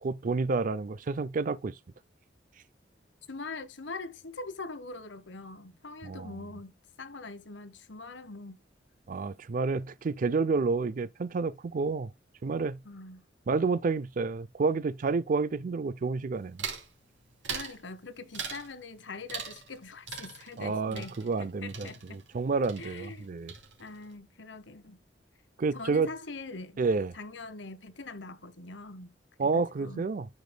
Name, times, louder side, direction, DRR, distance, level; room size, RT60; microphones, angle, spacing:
voice 1, 0.0-1.8 6.0-6.4 9.1-12.1 12.4-12.8 13.5-16.7 20.6-23.5 25.6-26.1 26.8-27.1 29.4-30.3, right 4 dB, 45° right, 0.4 m, -29 dB
voice 2, 3.3-8.6 12.8-13.2 17.5-22.4 22.8-23.3 23.8-25.0 25.7-26.8 27.1-29.1 29.4-30.0, left 3 dB, 75° left, 1.1 m, -43 dB
sound 1, 16.6-16.9 17.4-17.8 18.3-18.7 19.3-19.8 20.1-22.4 22.6-23.2 23.5-24.0, right 6 dB, 85° right, 3.0 m, -40 dB
13.0 x 5.1 x 2.2 m
head